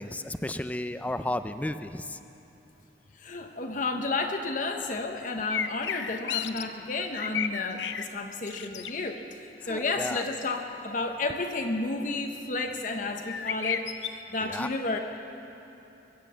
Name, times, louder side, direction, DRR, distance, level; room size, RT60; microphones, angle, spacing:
voice 1, 0.0-2.2 9.6-10.2 14.4-14.7, left 1 dB, 10° left, 10 dB, 0.4 m, -33 dB
voice 2, 3.2-9.2 9.6-15.0, left 3 dB, 45° left, 4 dB, 0.8 m, -31 dB
sound 1, 5.5-6.6 7.0-8.1 8.4-8.9 13.2-14.1, left 8 dB, 85° left, 0.6 m, -32 dB
22.5 x 8.3 x 7.3 m, 2.9 s
head